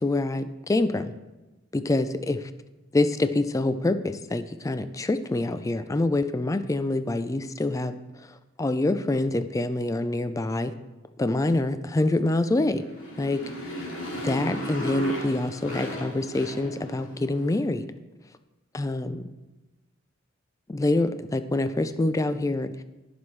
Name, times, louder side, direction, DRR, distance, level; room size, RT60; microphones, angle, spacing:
voice 1, 0.0-1.1 1.7-2.5 2.9-7.9 8.6-10.7 11.2-12.8 13.2-13.4 14.2-17.9 18.7-19.2 20.7-22.7, left 2 dB, 15° left, 11 dB, 0.4 m, -26 dB
Motorcycle, 12.8-17.3, equal, 70° left, 2.7 m, -35 dB
18.0 x 6.1 x 3.2 m, 1.1 s
head